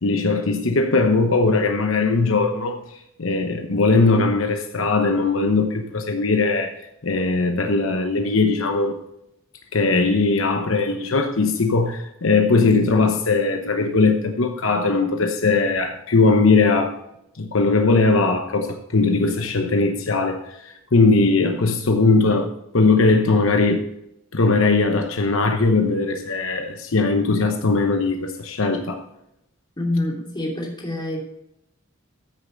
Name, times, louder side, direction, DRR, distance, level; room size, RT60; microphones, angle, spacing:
voice 1, 0.0-6.8 7.0-9.0 9.7-17.0 17.4-23.8 24.3-29.0, left 3 dB, 75° left, 5 dB, 1.0 m, -19 dB
voice 2, 29.8-31.2, left 1 dB, 20° left, -2 dB, 2.8 m, -26 dB
13.5 x 6.7 x 4.0 m, 0.81 s
head